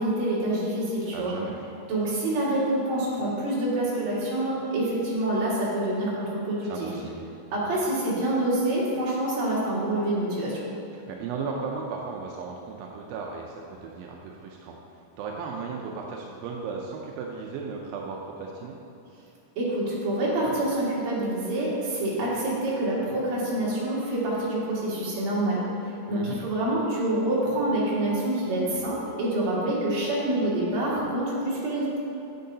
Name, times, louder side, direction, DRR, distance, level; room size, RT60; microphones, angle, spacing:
voice 1, 0.0-1.3 1.9-6.7 7.5-10.6 19.6-32.0, right 1 dB, 55° right, -7 dB, 2.9 m, -26 dB
voice 2, 1.1-1.6 6.6-7.2 11.1-14.8 15.2-18.8 26.1-26.4, right 5 dB, 85° right, 0 dB, 2.4 m, -35 dB
9.2 x 8.5 x 2.7 m, 2.9 s
omnidirectional pair, 4.1 m